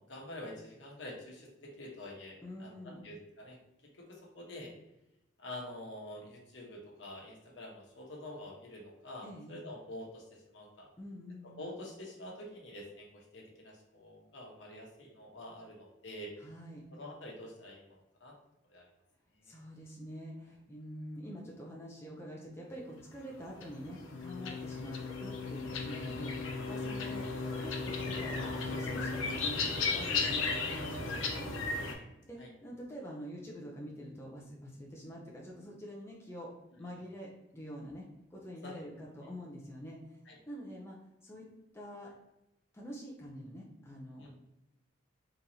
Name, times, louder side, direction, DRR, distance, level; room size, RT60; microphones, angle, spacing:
voice 1, 0.1-3.6 3.8-4.7 5.4-10.9 11.4-16.3 16.9-17.8 18.2-18.3 18.7-18.9 19.4-19.5 24.4-24.5 27.0-27.1 32.4-32.5 38.6-38.7 39.2-39.3 40.3-40.4 44.2-44.3, left 1 dB, 65° left, -2 dB, 1.0 m, -47 dB
voice 2, 2.4-3.0 9.2-9.6 11.0-11.7 16.4-16.8 19.4-31.5 32.2-36.5 36.8-38.1 38.3-40.2 40.5-41.5 41.7-42.1 42.7-44.3, equal, 15° left, -3 dB, 0.5 m, -46 dB
sound 1, 23.3-31.9, left 4 dB, 90° left, 0.7 m, -35 dB
3.8 x 3.0 x 2.7 m, 0.91 s
head